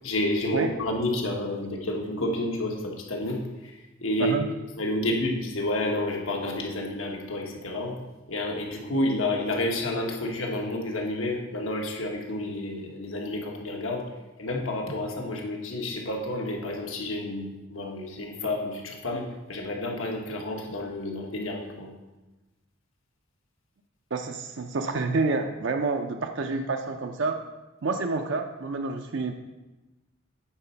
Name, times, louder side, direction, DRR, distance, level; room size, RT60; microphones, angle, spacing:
voice 1, 0.0-4.3 4.8-7.9 8.3-14.0 14.4-21.9, left 1 dB, 85° left, 1 dB, 1.3 m, -30 dB
voice 2, 24.1-27.4 27.8-29.3, right 3 dB, 65° right, 5 dB, 0.5 m, -28 dB
8.9 x 4.3 x 5.7 m, 1.1 s
head